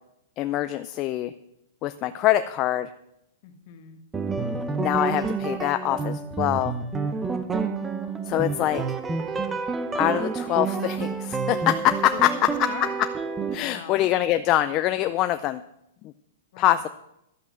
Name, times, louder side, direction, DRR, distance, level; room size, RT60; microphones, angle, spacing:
voice 1, 0.4-1.3 1.8-2.9 4.8-6.8 8.2-8.8 10.0-12.5 13.5-15.6 16.0-16.1 16.6-16.9, left 14 dB, 25° left, 10 dB, 0.4 m, -24 dB
voice 2, 3.4-4.0 12.1-12.9 13.6-14.1 16.5-16.8, left 9 dB, 45° left, 7 dB, 1.4 m, -41 dB
sound 1, 4.1-13.5, right 4 dB, 10° right, 0.8 m, -29 dB
12.0 x 7.8 x 7.4 m, 0.82 s
supercardioid pair, 165°, 0 cm